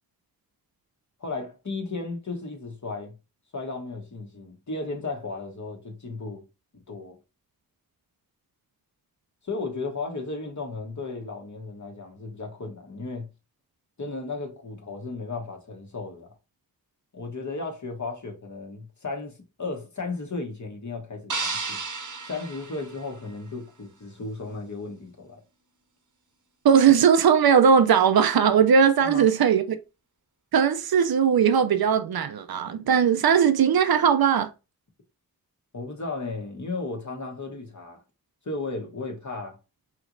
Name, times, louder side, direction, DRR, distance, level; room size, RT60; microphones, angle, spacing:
voice 1, 1.2-3.1 3.5-6.4 6.7-7.2 9.4-13.3 14.0-16.3 17.1-21.8 22.3-25.4 29.0-29.3 35.7-38.0 38.4-39.6, left 3 dB, 50° left, 1.3 m, -35 dB
sound 1, 21.3-23.6, right 4 dB, 55° right, 0.9 m, -33 dB
voice 2, 26.6-29.8 30.5-34.5, right 7 dB, 80° right, 0.6 m, -19 dB
5.0 x 3.0 x 2.6 m
wide cardioid pair, 70°, 36 cm